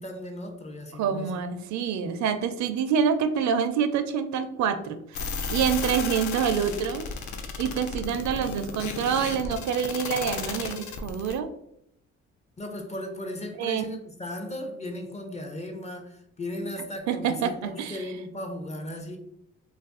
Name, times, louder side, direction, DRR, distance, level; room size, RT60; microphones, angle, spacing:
voice 1, 0.0-1.4 12.6-19.2, left 1 dB, 20° left, 4 dB, 0.5 m, -36 dB
voice 2, 1.0-5.2 5.5-7.1 7.6-11.5 13.6-13.8 17.1-18.0, right 7 dB, 70° right, 9 dB, 0.4 m, -26 dB
sound 1, 5.1-11.4, left 5 dB, 75° left, 0.5 m, -34 dB
2.4 x 2.3 x 3.5 m, 0.77 s
cardioid pair, 90°, 30 cm